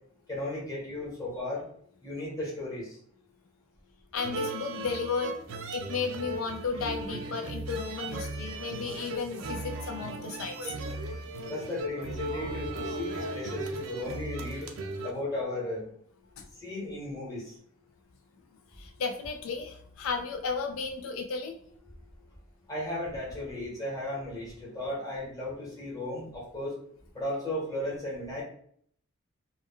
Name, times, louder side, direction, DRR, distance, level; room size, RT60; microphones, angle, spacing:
voice 1, 0.3-1.6 2.0-3.0 11.5-14.7 15.0-15.8 16.6-17.5 22.7-26.7 27.1-28.4, left 1 dB, 20° left, -5 dB, 1.0 m, -35 dB
voice 2, 4.1-5.3 5.7-10.7 16.4-16.5 18.7-21.5, left 5 dB, 90° left, 4 dB, 0.4 m, -34 dB
sound 1, 4.1-15.1, right 2 dB, 90° right, 0.5 m, -37 dB
2.2 x 2.1 x 3.6 m, 0.63 s
head